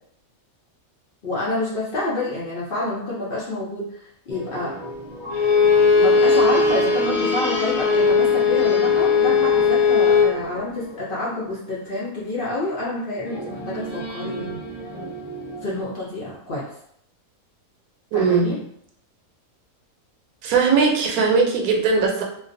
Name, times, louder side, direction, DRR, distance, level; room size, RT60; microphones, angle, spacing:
voice 1, 1.2-4.7 5.9-14.6 15.6-16.6 18.1-18.6, left 2 dB, 55° left, -7 dB, 0.6 m, -28 dB
sound 1, 4.3-12.2 13.3-15.8, equal, ahead, 0.8 m, -34 dB
Bowed string instrument, 5.3-10.3, left 5 dB, 80° left, 1.1 m, -18 dB
voice 2, 18.1-18.5 20.4-22.2, right 5 dB, 90° right, 1 dB, 1.0 m, -19 dB
2.4 x 2.2 x 2.5 m, 0.69 s
omnidirectional pair, 1.5 m